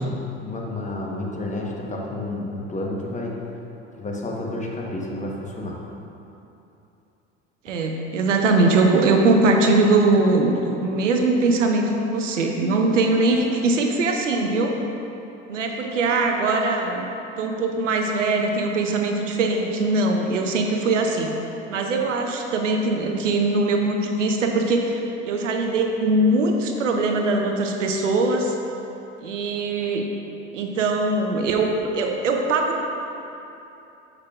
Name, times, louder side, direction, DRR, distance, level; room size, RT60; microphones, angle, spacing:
voice 1, 0.0-3.3 4.0-5.8, left 2 dB, 20° left, -2 dB, 1.1 m, -30 dB
voice 2, 7.6-14.8 15.5-17.1 17.4-21.4 21.7-28.6 29.2-30.1 30.5-32.8, right 2 dB, 85° right, 2 dB, 0.7 m, -21 dB
7.3 x 6.7 x 2.4 m, 2.9 s
hypercardioid pair, 70°, 36 cm